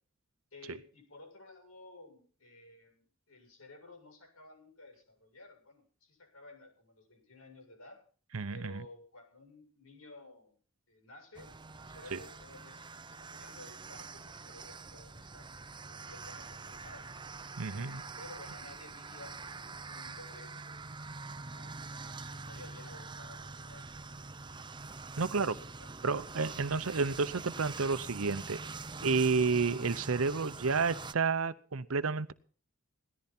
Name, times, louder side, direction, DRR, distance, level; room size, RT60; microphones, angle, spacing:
voice 1, 0.5-8.0 8.5-10.6 10.9-11.5 11.8-15.5 15.9-17.1 17.6-20.8 21.5-24.3 25.1-25.9, left 2 dB, 90° left, 7.5 m, -54 dB
voice 2, 8.3-8.7 12.1-12.2 17.6-18.0 25.2-25.5 26.0-28.6 29.0-32.3, right 4 dB, 75° right, 0.8 m, -30 dB
sound 1, 11.3-31.1, right 4 dB, 20° right, 0.7 m, -45 dB
18.5 x 14.5 x 4.3 m
head